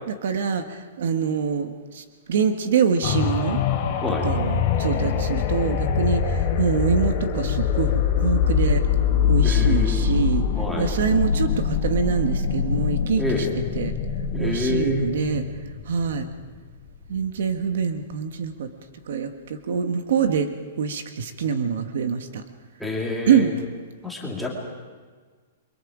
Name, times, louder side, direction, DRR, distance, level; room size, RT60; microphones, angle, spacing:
voice 1, 0.1-3.6 4.2-8.8 9.3-10.5 10.8-13.5 13.7-13.9 14.4-15.4 15.9-16.3 17.1-18.7 19.1-20.5 20.8-22.4 23.3-23.5, right 6 dB, 60° right, 7 dB, 1.5 m, -25 dB
sound 1, 3.0-16.7 17.2-17.3, left 7 dB, 30° left, 3.1 m, -23 dB
voice 2, 9.4-10.1 10.5-10.9 13.2-13.5 14.3-15.4 22.8-23.5 24.0-24.5, left 2 dB, ahead, -3 dB, 2.6 m, -28 dB
29.5 x 23.0 x 5.0 m, 1.5 s
hypercardioid pair, 175°, 0 cm